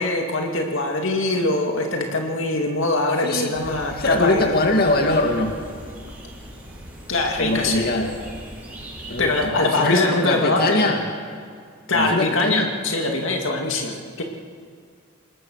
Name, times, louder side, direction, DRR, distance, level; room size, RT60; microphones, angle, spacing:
voice 1, 0.0-4.5 7.1-7.9 9.2-10.8 11.9-14.2, left 2 dB, 65° left, 2 dB, 2.4 m, -23 dB
voice 2, 3.2-3.5 3.9-5.5 7.4-8.1 9.1-11.0 11.9-12.7, left 2 dB, 45° left, 2 dB, 2.4 m, -22 dB
sound 1, 3.5-9.5, equal, 10° right, 7.9 m, -39 dB
28.0 x 20.5 x 6.6 m, 2.1 s
head